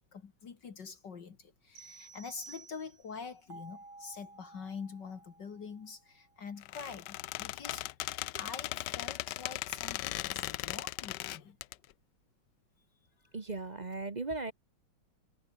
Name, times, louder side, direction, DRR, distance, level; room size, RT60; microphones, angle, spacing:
voice 1, 0.1-7.9 8.4-11.6, left 5 dB, 60° left, 2.5 m, -45 dB
sound 1, 1.8-3.3, right 6 dB, 50° right, 2.7 m, -53 dB
sound 2, 3.5-6.5, right 2 dB, 85° right, 8.5 m, -54 dB
Squeak, 6.6-11.7, left 16 dB, 75° left, 1.1 m, -38 dB
voice 2, 13.3-14.5, right 3 dB, 30° right, 0.9 m, -37 dB
omnidirectional pair, 2.2 m